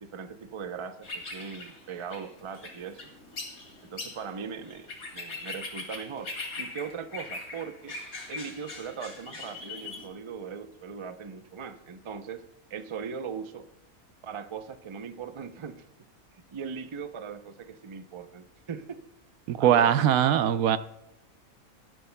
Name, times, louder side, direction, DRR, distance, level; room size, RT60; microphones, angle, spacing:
voice 1, 0.0-3.0 3.8-6.3 6.6-7.9 8.3-12.4 12.7-13.7 14.2-15.8 16.3-19.0 19.6-20.1, right 6 dB, 45° right, 9 dB, 0.3 m, -39 dB
sound 1, 1.0-10.1, left 3 dB, 75° left, 2.5 m, -41 dB
voice 2, 19.5-20.8, right 10 dB, 80° right, 12 dB, 1.0 m, -21 dB
18.0 x 12.5 x 2.2 m, 0.88 s
omnidirectional pair, 1.5 m